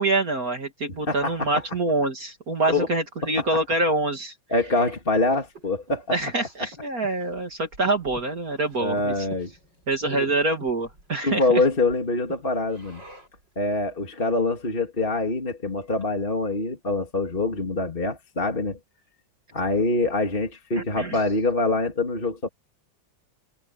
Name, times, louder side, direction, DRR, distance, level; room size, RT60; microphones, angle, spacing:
voice 1, 0.0-4.3 6.1-9.1 9.9-11.6 20.8-21.2, right 2 dB, 50° right, 3.2 m, -25 dB
voice 2, 1.1-1.6 2.7-2.9 3.4-3.5 4.5-6.2 8.8-9.5 10.1-10.3 11.2-13.0 13.6-18.8 19.5-22.5, left 2 dB, 30° left, 2.8 m, -25 dB
Breathing, 5.0-13.5, equal, 70° right, 6.7 m, -49 dB
omnidirectional pair, 2.0 m